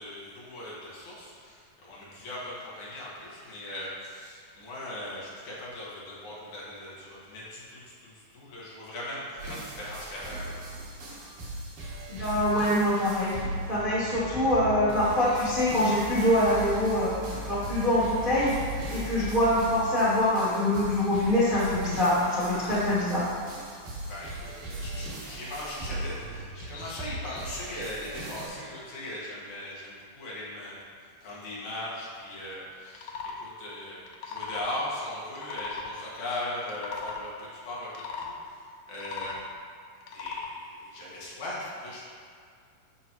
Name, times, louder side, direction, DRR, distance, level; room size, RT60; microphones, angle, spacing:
voice 1, 0.0-10.5 24.0-30.8 31.2-38.3 38.9-39.4 40.1-42.1, left 1 dB, 60° left, -7 dB, 2.8 m, -39 dB
sound 1, 9.4-28.5, right 1 dB, 85° right, 3.4 m, -39 dB
voice 2, 12.1-17.2 17.4-18.5 18.9-23.3, left 1 dB, 70° right, -9 dB, 0.5 m, -24 dB
sound 2, 14.1-19.6, left 2 dB, 30° right, 1.2 m, -40 dB
sound 3, 32.9-33.4 34.0-34.7 35.3-35.9 36.6-37.2 37.9-38.3 38.9-39.5 40.0-40.5, left 5 dB, 80° left, 2.1 m, -38 dB
13.0 x 4.8 x 3.0 m, 2.2 s
omnidirectional pair, 4.1 m